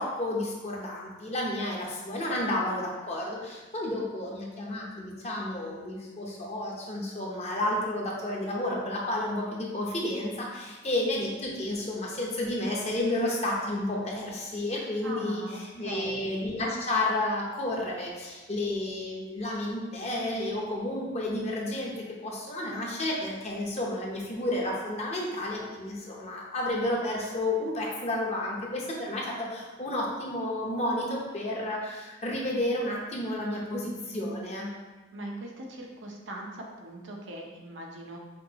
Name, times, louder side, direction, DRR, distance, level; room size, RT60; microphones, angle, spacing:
voice 1, 0.0-15.4 15.7-21.9 22.2-34.7, left 1 dB, 35° left, -2 dB, 0.8 m, -31 dB
voice 2, 15.0-16.2 34.0-34.8 35.1-38.2, right 1 dB, 80° right, 0 dB, 0.7 m, -41 dB
5.1 x 2.9 x 2.9 m, 1.2 s
head